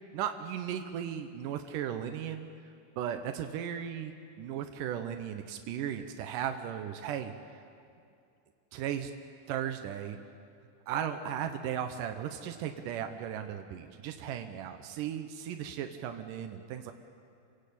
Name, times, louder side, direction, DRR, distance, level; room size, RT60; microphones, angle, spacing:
voice 1, 0.1-2.5 3.0-7.3 8.7-9.1 9.5-10.2 10.9-16.9, right 9 dB, 80° right, 6 dB, 1.9 m, -36 dB
28.0 x 16.5 x 8.5 m, 2.4 s
omnidirectional pair, 5.0 m